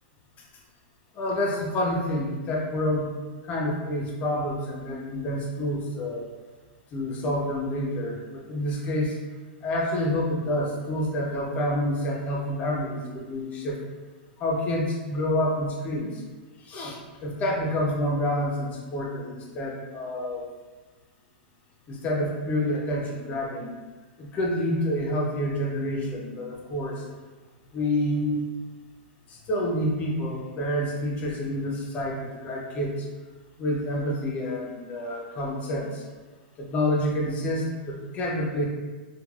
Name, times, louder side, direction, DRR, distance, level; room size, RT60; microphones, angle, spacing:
voice 1, 1.1-3.1 3.4-6.3 6.9-9.2 9.6-13.8 14.4-16.2 16.6-20.5 21.9-23.7 24.2-27.0 27.7-28.5 29.3-33.1 33.6-36.0 36.6-38.7, left 1 dB, 25° left, -1 dB, 0.5 m, -28 dB
3.1 x 2.2 x 2.3 m, 1.3 s
hypercardioid pair, 140°, 5 cm